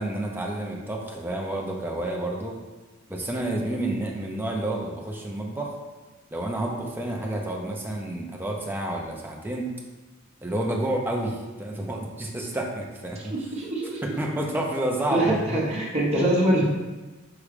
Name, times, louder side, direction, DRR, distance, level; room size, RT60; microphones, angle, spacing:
voice 1, 0.0-2.6 3.1-5.8 6.3-9.7 10.4-13.3 14.0-15.6, right 1 dB, 10° right, -1 dB, 0.5 m, -29 dB
voice 2, 13.3-14.0 15.1-16.7, right 1 dB, 30° right, -5 dB, 0.9 m, -24 dB
4.8 x 3.1 x 3.3 m, 1.2 s
head